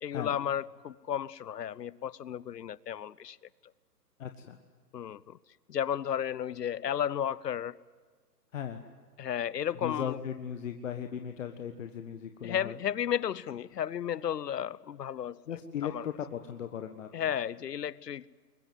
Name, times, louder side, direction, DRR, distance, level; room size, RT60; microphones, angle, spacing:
voice 1, 0.0-3.4 4.9-5.4 5.7-7.7 9.2-10.2 12.4-15.4 15.9-16.1 17.1-18.4, left 9 dB, 75° left, 22 dB, 0.8 m, -33 dB
voice 2, 4.2-4.6 8.5-8.8 9.8-12.8 15.5-17.3, left 8 dB, 50° left, 7 dB, 1.5 m, -37 dB
22.5 x 21.0 x 9.3 m, 1.5 s
hypercardioid pair, 140°, 49 cm